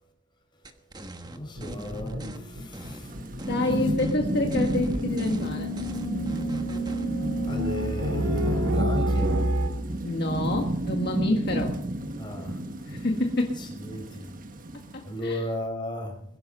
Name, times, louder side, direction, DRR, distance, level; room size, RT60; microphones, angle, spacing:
sound 1, 0.6-2.4 2.7-3.7 4.0-4.2 4.5-7.1, right 1 dB, 20° right, 1.3 m, -43 dB
voice 1, 1.3-3.1 6.5-6.6 7.4-9.4 12.1-13.0 13.6-14.3 15.0-16.1, left 1 dB, 25° left, 4.8 m, -35 dB
sound 2, 1.6-9.7, right 1 dB, 70° right, 2.8 m, -30 dB
Thunderstorm / Rain, 3.0-15.3, right 1 dB, 45° right, 1.4 m, -32 dB
voice 2, 3.5-5.7 10.0-11.8 12.9-13.6 14.9-15.4, left 2 dB, 55° left, 1.6 m, -27 dB
22.0 x 11.0 x 5.4 m
head